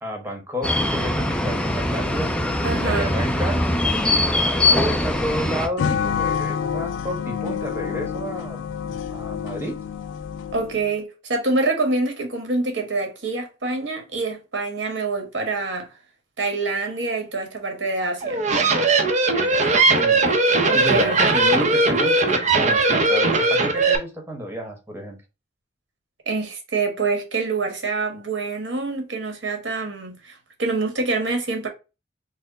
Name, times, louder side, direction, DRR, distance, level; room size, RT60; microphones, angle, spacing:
voice 1, 0.0-3.7 4.0-9.8 19.3-20.2 20.7-25.2, equal, 15° right, 1.1 m, -31 dB
sound 1, 0.6-5.7, left 2 dB, 5° left, 0.4 m, -22 dB
voice 2, 2.6-3.1 10.5-15.9 16.4-18.4 20.6-21.2 26.3-31.7, right 3 dB, 75° right, 1.2 m, -26 dB
sound 2, 5.8-10.9, left 7 dB, 80° left, 0.3 m, -28 dB
sound 3, 18.2-24.0, right 3 dB, 40° right, 0.6 m, -19 dB
4.2 x 2.1 x 3.8 m
head